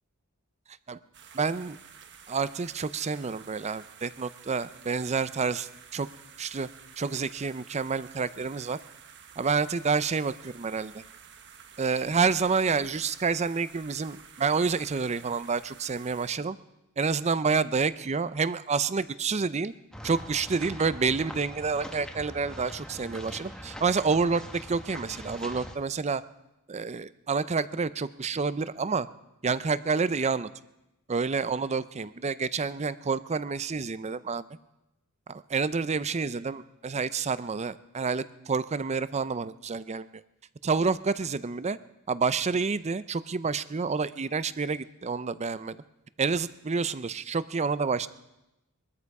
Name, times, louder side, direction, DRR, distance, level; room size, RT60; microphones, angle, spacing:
sound 1, 1.1-16.3, right 7 dB, 55° right, 1.2 m, -51 dB
voice 1, 1.3-1.8 2.3-6.1 6.4-6.7 7.0-8.8 9.4-11.0 11.8-16.6 17.0-19.7 20.0-26.2 26.7-29.1 29.4-30.5 31.1-34.4 35.3-40.1 40.6-41.8 42.1-45.8 46.2-48.1, right 5 dB, 30° right, 15 dB, 0.5 m, -28 dB
sound 2, 19.9-25.8, equal, 5° left, 1.2 m, -42 dB
22.0 x 13.5 x 4.8 m, 0.94 s
head